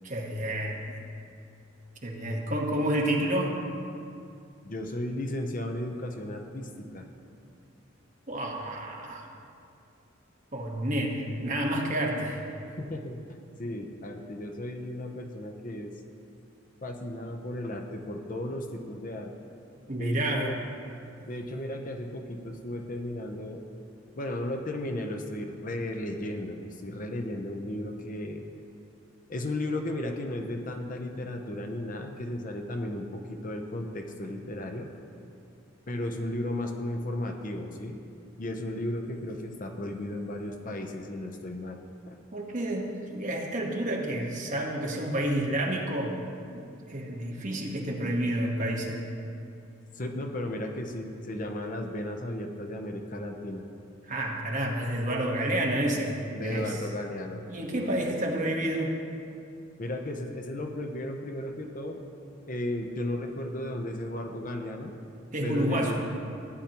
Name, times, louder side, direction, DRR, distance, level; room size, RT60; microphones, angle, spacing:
voice 1, 0.0-0.8 2.0-3.6 8.3-9.3 10.5-12.4 19.9-20.5 42.3-46.2 46.5-46.6 46.9-49.0 54.1-56.8 57.5-58.9 65.3-66.1, right 1 dB, 40° right, -1 dB, 1.2 m, -29 dB
voice 2, 4.6-7.1 12.8-13.2 13.6-15.9 16.8-19.3 20.0-20.6 21.2-23.6 24.1-28.4 29.3-34.9 35.9-38.0 38.4-42.2 49.9-53.7 56.3-57.4 57.7-58.1 59.8-62.0 62.5-64.9 65.4-66.0, left 1 dB, 40° left, 3 dB, 0.7 m, -35 dB
15.0 x 9.8 x 2.9 m, 2.5 s
head